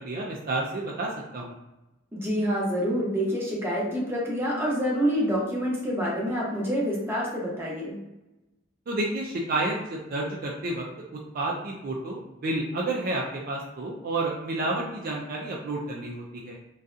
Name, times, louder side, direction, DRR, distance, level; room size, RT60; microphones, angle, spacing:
voice 1, 0.0-1.6 8.9-10.8 11.3-16.6, right 2 dB, 50° right, -2 dB, 0.4 m, -30 dB
voice 2, 2.1-8.0, equal, 10° right, -5 dB, 0.7 m, -27 dB
2.6 x 2.3 x 2.4 m, 0.98 s
head